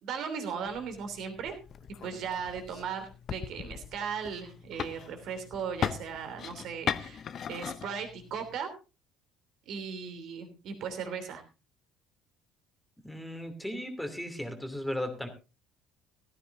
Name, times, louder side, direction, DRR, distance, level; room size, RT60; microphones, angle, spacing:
voice 1, 0.0-1.6 2.0-7.2 7.5-8.7 9.7-11.4, right 6 dB, 55° right, 6 dB, 3.1 m, -37 dB
sound 1, 0.7-8.6, left 8 dB, 45° left, 0.7 m, -39 dB
voice 2, 13.0-15.3, left 1 dB, 5° left, 6 dB, 2.8 m, -36 dB
16.0 x 14.0 x 2.7 m, 0.30 s
figure-of-eight pair, 55°, 0 cm